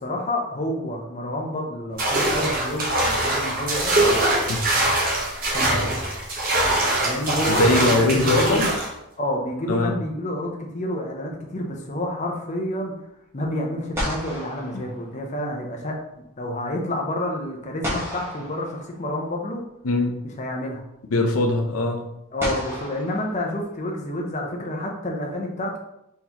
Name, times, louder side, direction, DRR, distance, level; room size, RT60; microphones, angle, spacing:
voice 1, 0.0-4.2 5.5-5.9 7.0-8.7 9.2-12.9 13.3-16.0 16.4-19.6 20.4-20.8 22.3-25.8, left 1 dB, 30° left, 0 dB, 0.6 m, -29 dB
sound 1, 2.0-8.9, right 1 dB, 40° right, 1.0 m, -22 dB
voice 2, 7.5-8.7 9.7-9.9 14.7-14.8 19.8-20.2 21.1-22.0, left 2 dB, 80° left, 3 dB, 0.6 m, -21 dB
sound 2, 8.5-9.3 13.4-13.5 13.9-15.7 17.8-19.4 20.8-20.9 22.4-24.0, equal, 10° right, 1.1 m, -33 dB
4.1 x 4.0 x 2.9 m, 0.83 s
head